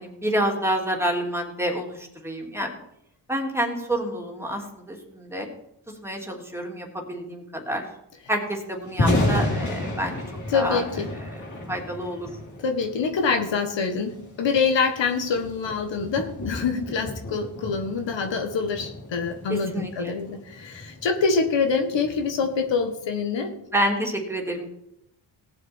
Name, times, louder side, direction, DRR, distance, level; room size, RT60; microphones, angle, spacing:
voice 1, 0.0-2.7 3.3-5.5 6.0-7.9 8.3-10.2 10.5-10.8 11.3-11.4 11.7-12.3 19.5-20.1 23.7-24.7, right 1 dB, 5° right, 1 dB, 3.0 m, -28 dB
Thunder, 8.8-23.0, left 1 dB, 40° left, 3.1 m, -32 dB
voice 2, 10.5-11.1 12.6-23.5, left 5 dB, 75° left, 5 dB, 1.7 m, -25 dB
18.0 x 7.5 x 4.5 m, 0.80 s
cardioid pair, 75°, 45 cm